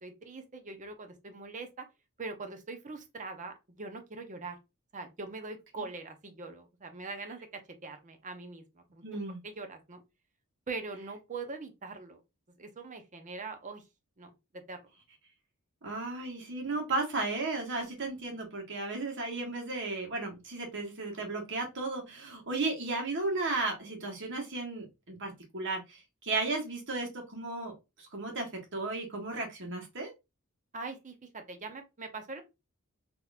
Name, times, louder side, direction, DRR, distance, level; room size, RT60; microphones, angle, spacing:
voice 1, 0.0-1.8 2.2-4.6 4.9-7.5 7.8-10.0 10.7-12.2 12.6-13.8 14.2-14.3 14.7-14.8 30.7-32.4, right 3 dB, 35° right, 0.7 m, -42 dB
voice 2, 9.0-9.4 15.8-27.7 28.1-30.1, right 3 dB, 60° right, 1.4 m, -34 dB
3.8 x 2.9 x 2.3 m
head